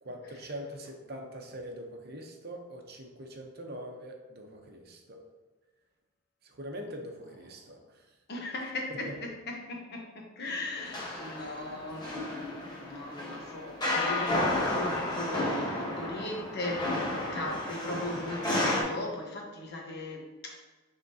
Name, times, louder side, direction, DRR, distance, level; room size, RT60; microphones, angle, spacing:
voice 1, 0.0-5.2 6.4-7.8 8.9-9.1, equal, 50° right, 2 dB, 0.9 m, -43 dB
voice 2, 8.3-20.6, left 2 dB, 50° left, 1 dB, 1.1 m, -38 dB
sound 1, 10.8-18.8, left 1 dB, 20° left, 1.2 m, -32 dB
9.7 x 3.7 x 2.8 m, 1.2 s
head